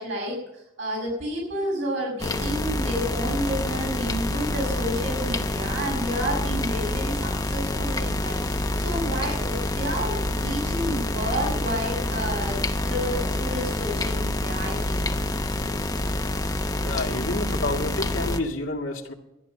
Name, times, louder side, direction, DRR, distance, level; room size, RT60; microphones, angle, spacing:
voice 1, 0.0-12.6 12.8-15.1, equal, 65° right, -2 dB, 6.1 m, -30 dB
sound 1, 2.2-18.4, left 1 dB, 20° left, 0.7 m, -27 dB
voice 2, 16.8-19.1, left 2 dB, 75° left, 1 dB, 2.0 m, -29 dB
13.5 x 10.5 x 6.5 m, 0.87 s
head